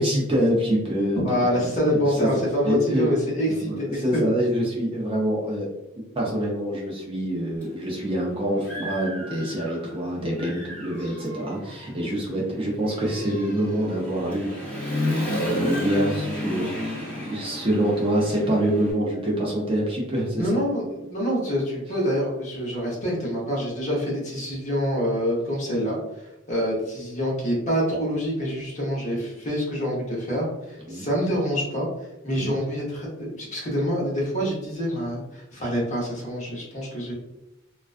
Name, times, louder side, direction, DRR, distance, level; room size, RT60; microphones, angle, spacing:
voice 1, 0.0-1.5 1.8-2.3 2.6-3.1 3.5-5.7 6.2-14.5 14.9-15.0 15.4-16.9 17.2-20.6 30.9-31.0 32.3-32.5, right 1 dB, 25° right, -3 dB, 0.4 m, -26 dB
voice 2, 1.2-4.2 20.4-26.0 26.5-31.9 32.2-37.1, equal, 35° left, -4 dB, 0.8 m, -26 dB
Human voice / Motorcycle, 7.6-7.7 8.2-10.0 10.3-18.9, left 1 dB, 10° left, 0.8 m, -32 dB
2.3 x 2.2 x 2.4 m, 0.94 s
head